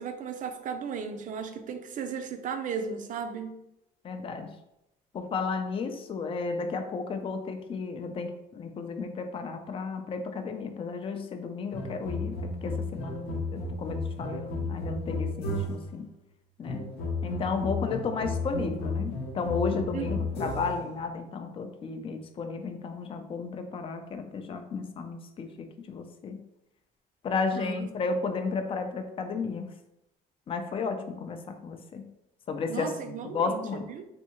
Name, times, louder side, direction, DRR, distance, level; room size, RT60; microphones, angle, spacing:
voice 1, 0.0-3.6 19.9-20.3 27.5-27.9 32.7-34.1, right 6 dB, 50° right, 7 dB, 0.5 m, -35 dB
voice 2, 4.0-4.5 5.1-16.1 16.6-16.9 17.2-26.4 27.2-29.7 30.5-32.1 32.5-33.8, left 4 dB, 35° left, 6 dB, 0.4 m, -33 dB
sound 1, 11.7-16.0 16.6-20.9, left 2 dB, 75° left, 0.7 m, -33 dB
3.3 x 2.6 x 2.9 m, 0.86 s
cardioid pair, 110°, 17 cm